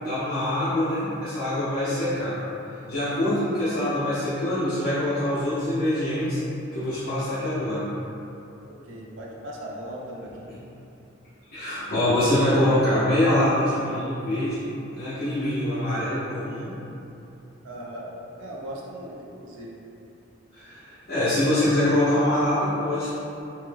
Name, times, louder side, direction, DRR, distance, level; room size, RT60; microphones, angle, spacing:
voice 1, 0.0-2.4 2.9-6.4 6.7-7.9 11.5-14.6 14.9-16.7 20.5-23.1, left 1 dB, 55° left, -14 dB, 0.8 m, -24 dB
voice 2, 8.7-10.5 17.6-19.7, right 1 dB, 85° right, -3 dB, 0.5 m, -38 dB
3.0 x 2.2 x 3.3 m, 2.8 s
head